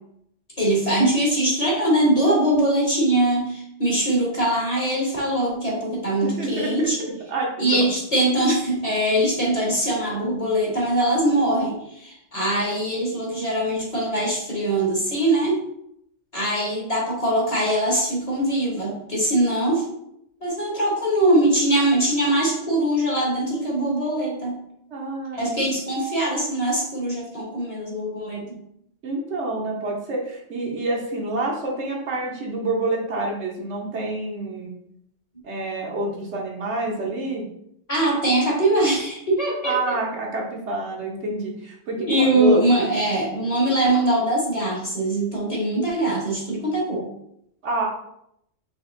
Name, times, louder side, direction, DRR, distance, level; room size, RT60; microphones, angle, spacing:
voice 1, 0.6-7.1 7.6-15.6 16.3-19.8 20.4-24.6 25.3-28.6 37.9-40.0 42.1-47.1, right 1 dB, 30° left, -4 dB, 1.2 m, -22 dB
voice 2, 6.2-6.9 7.3-7.8 24.9-25.7 29.0-34.7 35.4-37.5 39.6-42.9 47.6-47.9, right 2 dB, 70° right, -2 dB, 1.2 m, -27 dB
4.9 x 2.9 x 2.6 m, 0.75 s
omnidirectional pair, 1.3 m